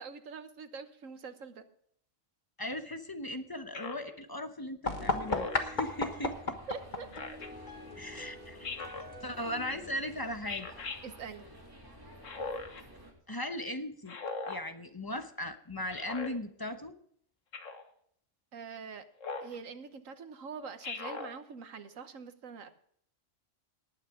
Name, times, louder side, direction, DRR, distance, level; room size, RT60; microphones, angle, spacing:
voice 1, 0.0-1.6 6.7-7.4 11.0-11.5 18.5-19.0 19.4-22.8, right 5 dB, 85° right, 9 dB, 1.5 m, -44 dB
voice 2, 2.6-6.5 8.0-8.6 9.2-10.7 13.3-14.2 14.5-16.9, left 1 dB, 20° left, 7 dB, 0.9 m, -38 dB
Speech synthesizer, 3.7-4.1 5.3-5.7 7.1-7.5 8.6-9.1 10.5-11.0 12.2-12.8 14.1-14.6 15.9-16.3 17.5-17.9 19.2-19.6 20.8-21.3, left 4 dB, 75° left, 1.7 m, -39 dB
sound 1, 4.8-10.4, left 3 dB, 40° left, 1.5 m, -37 dB
sound 2, 5.7-13.1, equal, 15° right, 2.9 m, -53 dB
19.0 x 9.1 x 3.7 m, 0.63 s
omnidirectional pair, 1.3 m